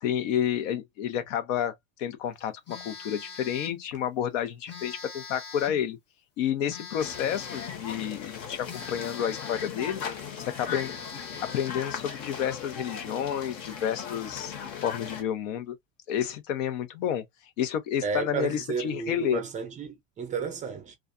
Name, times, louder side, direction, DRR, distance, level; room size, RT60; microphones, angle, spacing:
voice 1, 0.0-6.0 6.4-10.0 10.4-11.0 11.4-15.7 16.1-17.2 17.6-19.4, left 9 dB, 85° left, 0.9 m, -30 dB
Telephone, 2.7-3.8 4.7-5.9 6.7-7.9 8.7-9.9 10.3-10.4 10.7-11.9, left 5 dB, 30° left, 0.8 m, -42 dB
sound 1, 7.0-15.2, left 7 dB, 50° left, 1.0 m, -38 dB
voice 2, 18.0-21.0, right 5 dB, 20° right, 0.5 m, -32 dB
2.4 x 2.2 x 2.5 m
supercardioid pair, 150°, 37 cm